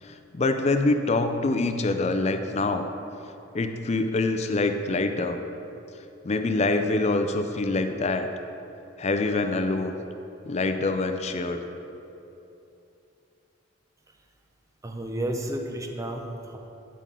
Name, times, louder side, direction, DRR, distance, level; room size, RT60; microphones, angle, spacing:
voice 1, 0.0-2.9 3.5-5.4 6.2-8.3 9.0-10.0 10.4-11.7, left 2 dB, 35° left, 7 dB, 0.4 m, -25 dB
voice 2, 14.8-16.6, right 1 dB, 15° right, 3 dB, 0.6 m, -32 dB
10.0 x 3.7 x 5.4 m, 2.9 s
head